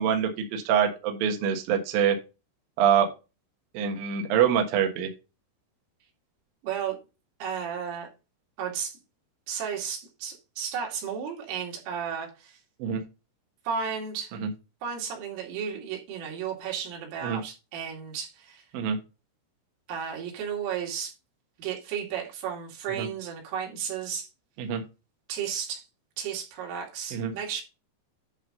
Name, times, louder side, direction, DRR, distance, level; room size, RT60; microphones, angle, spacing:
voice 1, 0.0-2.2 2.8-3.1 3.7-5.1 12.8-13.0 14.4-14.5 17.2-17.4 18.7-19.0 23.0-23.1 24.6-24.8 27.1-27.3, right 8 dB, 65° right, 2.6 m, -25 dB
voice 2, 6.6-7.0 7.4-8.1 8.6-9.0 9.5-12.6 13.7-14.4 14.8-18.6 19.9-21.1 21.6-24.3 25.3-25.9 26.2-27.6, right 7 dB, 90° right, 4.9 m, -33 dB
11.0 x 3.7 x 5.4 m
omnidirectional pair, 5.6 m